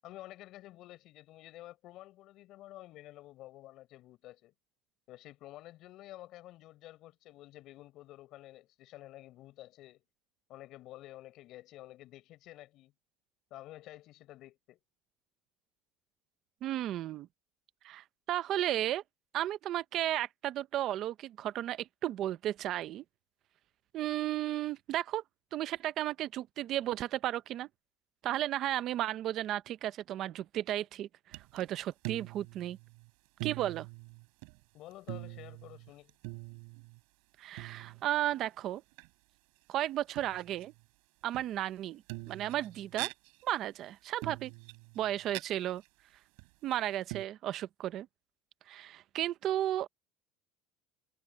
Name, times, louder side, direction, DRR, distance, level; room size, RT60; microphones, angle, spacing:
voice 1, 0.0-4.5 5.1-10.0 10.5-12.9 13.5-14.8 34.7-36.1, left 15 dB, 45° left, 7.0 m, -51 dB
voice 2, 16.6-17.3 17.8-19.0 19.3-23.0 23.9-25.2 25.5-27.7 28.2-32.8 33.4-33.9 37.4-38.8 39.7-40.7 41.2-42.0 42.3-43.1 43.4-44.5 45.0-45.8 46.6-48.1 48.7-49.9, right 13 dB, 40° right, 0.5 m, -34 dB
sound 1, 31.3-31.6 31.9-33.1 33.4-34.6 34.9-37.0 37.6-38.3 38.9-39.1 40.1-40.8 41.3-41.8 42.1-43.6 44.2-45.4 45.8-45.9 46.4-46.7 47.1-47.3, right 38 dB, 70° right, 7.3 m, -44 dB
cardioid pair, 170°, 0 cm